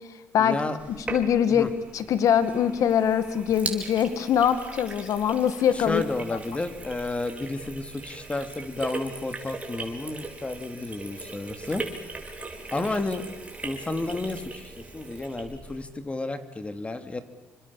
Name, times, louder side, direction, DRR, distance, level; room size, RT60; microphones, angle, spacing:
voice 1, 0.4-0.8 1.5-1.7 5.7-11.8 12.7-13.2 13.6-17.2, left 2 dB, 20° left, 9 dB, 2.7 m, -31 dB
Sink (filling or washing), 0.8-15.9, right 3 dB, 25° right, 5.2 m, -39 dB
voice 2, 1.1-1.7 1.9-6.0, left 9 dB, 70° left, 12 dB, 1.8 m, -23 dB
28.0 x 25.5 x 7.2 m, 1.1 s
cardioid pair, 95°, 6 cm